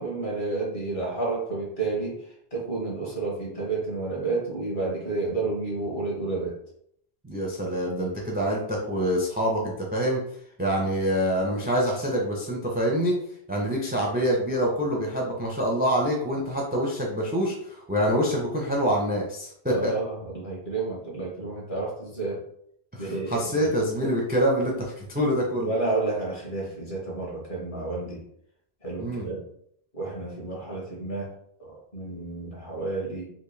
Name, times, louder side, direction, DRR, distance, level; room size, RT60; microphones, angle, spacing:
voice 1, 0.0-6.6 19.7-22.4 23.0-23.7 24.0-24.1 25.6-28.2 28.8-29.4 29.9-31.3 31.6-33.2, right 3 dB, 50° left, -3 dB, 1.4 m, -31 dB
voice 2, 7.2-10.2 10.6-13.2 13.5-19.9 22.9-25.7 29.0-29.3, equal, 15° right, -1 dB, 0.4 m, -26 dB
3.5 x 2.5 x 3.2 m, 0.71 s
omnidirectional pair, 1.1 m